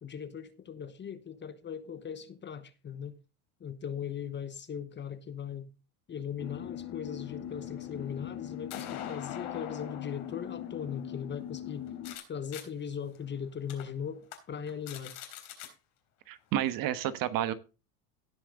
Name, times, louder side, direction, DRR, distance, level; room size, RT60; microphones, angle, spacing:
voice 1, 0.0-3.2 3.6-5.7 6.1-11.9 12.3-15.2, left 7 dB, 25° left, 1.0 m, -39 dB
sound 1, 6.4-12.2, left 11 dB, 50° left, 2.4 m, -41 dB
sound 2, 7.5-12.2 12.5-12.6 13.2-13.3 13.7-13.8 14.2-14.4 14.7-15.7, left 10 dB, 70° left, 3.7 m, -45 dB
voice 2, 16.3-17.5, right 12 dB, 50° right, 1.3 m, -30 dB
17.0 x 5.9 x 3.8 m
supercardioid pair, 105°, 44 cm